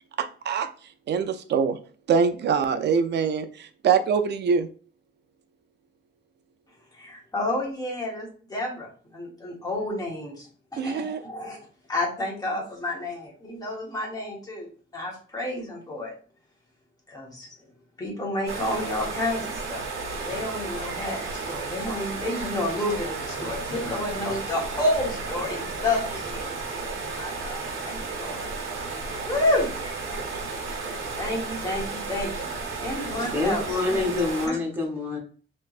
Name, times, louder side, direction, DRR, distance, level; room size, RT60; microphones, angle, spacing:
voice 1, 0.2-0.7 1.1-1.8 2.1-4.7 10.8-11.2, right 6 dB, 55° right, 9 dB, 0.4 m, -24 dB
voice 2, 7.0-11.6 11.9-14.7 14.9-16.1 17.1-17.5 18.0-19.8 20.2-28.5 29.3-29.7 30.6-32.5 32.8-34.1 34.4-34.6, left 1 dB, 20° left, -2 dB, 1.2 m, -30 dB
sound 1, 18.5-34.5, right 4 dB, 80° right, 1.0 m, -33 dB
voice 3, 33.3-35.2, left 3 dB, 10° right, -2 dB, 0.9 m, -26 dB
3.3 x 3.0 x 2.4 m, 0.41 s
wide cardioid pair, 155°, 21 cm